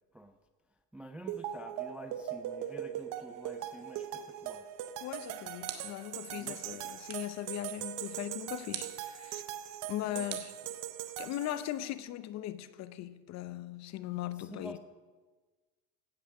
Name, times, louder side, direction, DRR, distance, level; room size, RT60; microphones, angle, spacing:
voice 1, 0.9-4.7 6.3-6.9 10.0-10.3 14.4-14.8, right 1 dB, 5° right, 0.3 m, -49 dB
sound 1, 1.3-11.9, right 11 dB, 50° right, 0.9 m, -40 dB
voice 2, 5.0-9.4 9.9-10.5 11.2-14.8, left 13 dB, 45° left, 0.7 m, -39 dB
sound 2, 5.6-6.2 7.1-7.4 8.7-9.1 10.3-11.2, right 10 dB, 75° right, 1.7 m, -44 dB
16.5 x 5.7 x 6.5 m
supercardioid pair, 125°, 39 cm